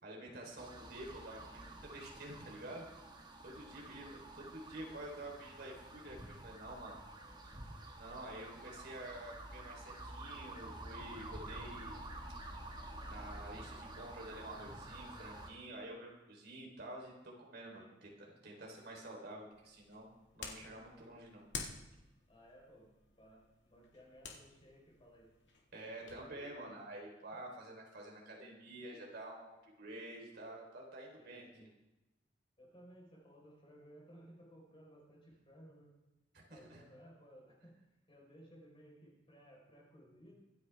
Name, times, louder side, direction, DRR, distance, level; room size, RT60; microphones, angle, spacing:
voice 1, 0.0-2.9 3.4-7.0 8.0-12.1 13.0-21.5 25.7-31.7 36.5-36.8, right 1 dB, 60° right, -1 dB, 3.6 m, -49 dB
sound 1, 0.6-15.5, right 1 dB, 25° right, 1.6 m, -50 dB
voice 2, 3.5-4.0 7.3-7.4 8.7-8.9 17.7-17.9 18.7-18.8 22.3-25.3 26.3-27.4 31.2-31.7 32.6-35.9 36.5-37.8 38.1-40.3, equal, 30° left, -2 dB, 4.1 m, -60 dB
sound 2, 19.5-26.3, left 5 dB, 70° left, 1.9 m, -51 dB
24.0 x 9.4 x 3.4 m, 0.99 s
head